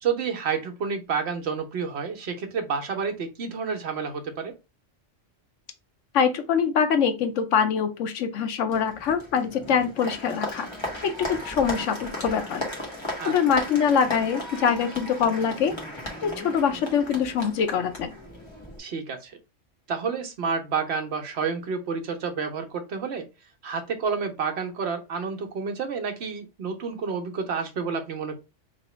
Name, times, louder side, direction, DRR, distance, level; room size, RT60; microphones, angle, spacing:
voice 1, 0.0-4.5 13.2-13.3 18.8-19.4 19.9-23.3 23.6-28.4, right 5 dB, 60° right, 5 dB, 1.1 m, -29 dB
voice 2, 6.1-10.7 11.0-12.6 13.3-15.8 16.2-18.1, left 7 dB, 85° left, 8 dB, 1.1 m, -24 dB
Applause, 8.7-18.8, left 1 dB, 25° left, 1.2 m, -36 dB
3.1 x 2.9 x 4.2 m, 0.26 s
omnidirectional pair, 1.3 m